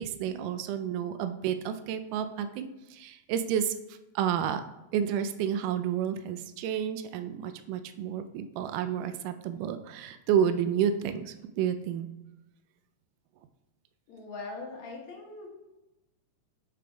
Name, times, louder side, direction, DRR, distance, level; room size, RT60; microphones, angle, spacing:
voice 1, 0.0-4.6 4.9-12.1, right 9 dB, 90° right, 10 dB, 2.1 m, -30 dB
voice 2, 14.1-15.5, left 3 dB, 65° left, 0 dB, 2.5 m, -41 dB
8.3 x 5.2 x 3.4 m, 0.99 s
omnidirectional pair, 3.6 m